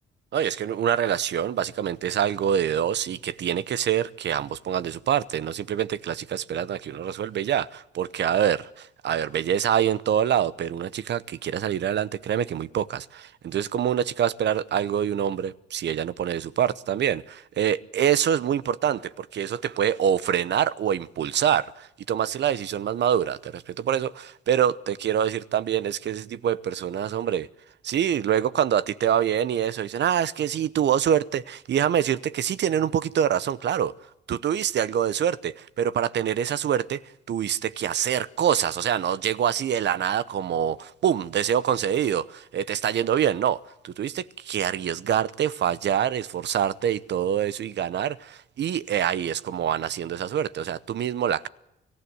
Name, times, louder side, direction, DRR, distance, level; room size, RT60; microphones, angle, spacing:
voice 1, 0.3-27.5 27.8-33.9 34.3-37.0 37.3-51.5, right 9 dB, 60° right, 0.9 m, -25 dB
24.0 x 15.5 x 9.5 m
cardioid pair, 90°, 20 cm